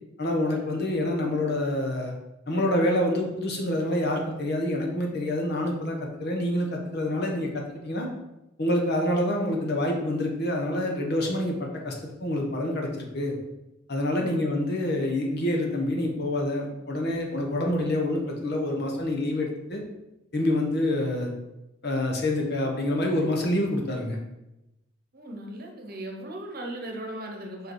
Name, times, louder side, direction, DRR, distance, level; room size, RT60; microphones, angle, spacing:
voice 1, 0.2-2.1 2.5-8.1 8.6-11.9 12.2-13.3 13.9-19.8 20.3-21.3 21.8-24.2, left 1 dB, 55° left, 1 dB, 1.2 m, -27 dB
voice 2, 14.1-14.5 25.1-27.7, right 1 dB, 45° right, 1 dB, 1.1 m, -38 dB
4.9 x 4.8 x 4.8 m, 0.93 s
head